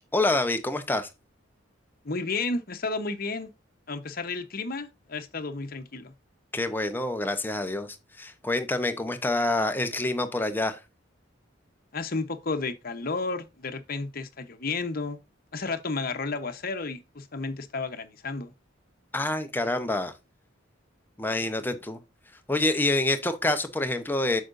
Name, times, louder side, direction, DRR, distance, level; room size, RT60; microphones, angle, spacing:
voice 1, 0.1-1.1 6.5-10.8 19.1-20.1 21.2-22.0 22.5-24.4, left 2 dB, 10° left, 0.8 m, -27 dB
voice 2, 2.0-3.5 3.9-6.1 11.9-15.2 15.5-18.5, left 3 dB, 50° left, 0.9 m, -32 dB
8.5 x 6.5 x 2.6 m
head